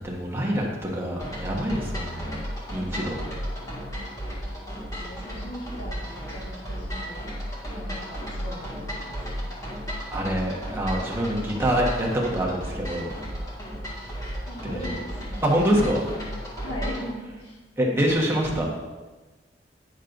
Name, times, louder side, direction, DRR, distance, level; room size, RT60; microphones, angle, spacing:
voice 1, 0.0-2.4 2.7-3.2 10.1-13.1 14.0-14.2 14.6-14.9 15.4-16.0 17.8-18.7, equal, 15° right, -3 dB, 1.3 m, -25 dB
sound 1, 1.2-17.1, equal, 20° left, 1.9 m, -34 dB
voice 2, 2.9-3.7 4.9-7.3 7.7-9.7 14.4-15.4 16.6-17.7, equal, 70° left, -4 dB, 1.5 m, -39 dB
9.9 x 6.3 x 2.6 m, 1.2 s
head